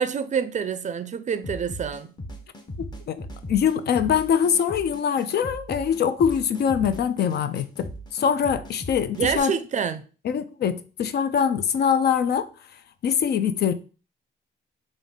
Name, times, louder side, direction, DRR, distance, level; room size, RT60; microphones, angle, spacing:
voice 1, 0.0-2.1 9.2-10.0, right 7 dB, 40° right, 0.4 m, -27 dB
sound 1, 1.4-9.4, equal, 20° left, 0.8 m, -38 dB
voice 2, 2.8-9.5 10.2-12.5 13.0-13.7, left 7 dB, 55° left, 0.4 m, -23 dB
3.8 x 2.6 x 3.6 m
cardioid pair, 90°, 20 cm